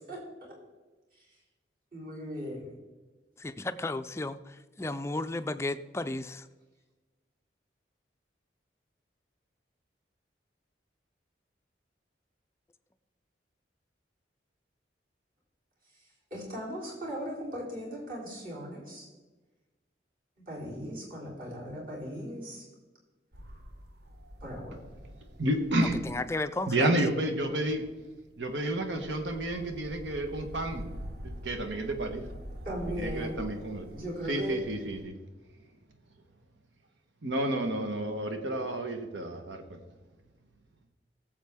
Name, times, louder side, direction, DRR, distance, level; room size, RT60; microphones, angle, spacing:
voice 1, 1.9-2.7 15.9-19.1 20.5-22.7 24.4-24.8 32.7-33.5 33.9-34.6, equal, 50° right, 3.6 m, -38 dB
voice 2, 3.4-6.5 25.8-26.9, left 2 dB, 15° left, 0.3 m, -34 dB
sound 1, 23.3-35.0, equal, 65° right, 1.0 m, -45 dB
voice 3, 25.4-26.0 26.7-27.9 28.4-30.9 31.2-32.3 33.0-33.9 34.3-35.2 37.2-39.8, right 1 dB, 80° right, 1.3 m, -30 dB
16.5 x 7.4 x 3.6 m
head